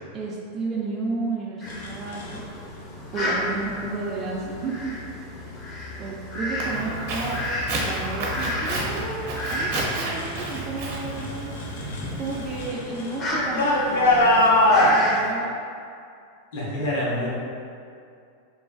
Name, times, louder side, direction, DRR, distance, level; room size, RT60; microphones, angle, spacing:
voice 1, 0.1-2.7 3.1-4.9 5.4-5.5 6.0-7.4 7.8-11.5 12.2-14.5 14.8-15.6, right 3 dB, 25° right, -4 dB, 0.3 m, -32 dB
Fowl, 1.6-15.3, left 1 dB, 30° left, 0.6 m, -33 dB
sound 1, 1.7-2.4 3.5-3.9 4.4-4.9 5.4-5.9 6.3-10.6 10.8-14.9, left 1 dB, 85° left, 0.5 m, -25 dB
Walk footsteps, 6.6-12.7, right 1 dB, 60° right, 0.7 m, -31 dB
voice 2, 11.8-12.1 14.9-15.1 16.5-17.3, left 1 dB, 70° left, -6 dB, 0.9 m, -28 dB
3.1 x 2.3 x 2.5 m, 2.4 s
supercardioid pair, 140°, 0 cm